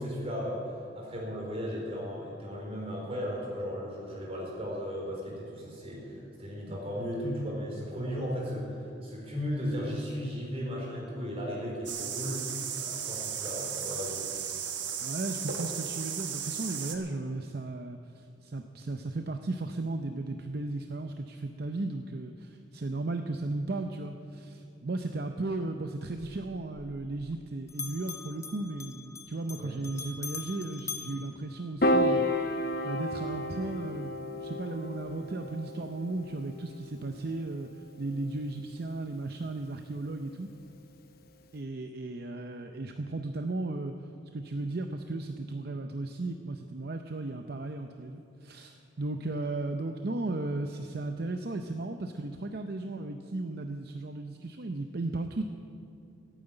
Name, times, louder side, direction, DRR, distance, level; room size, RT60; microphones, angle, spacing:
voice 1, 0.0-12.4 12.7-14.3 29.5-29.7, equal, 30° right, -3 dB, 4.2 m, -36 dB
sound 1, 11.9-17.0, right 8 dB, 70° right, 1.4 m, -35 dB
voice 2, 15.0-32.3 32.8-37.7 38.0-40.5 41.5-43.9 44.3-55.4, right 2 dB, 55° right, 6 dB, 0.6 m, -35 dB
Bell, 26.1-27.4 27.7-32.2, left 5 dB, 15° left, 0.5 m, -43 dB
Piano, 31.8-38.2, left 1 dB, 50° left, 0.9 m, -32 dB
15.5 x 9.2 x 8.9 m, 2.7 s
head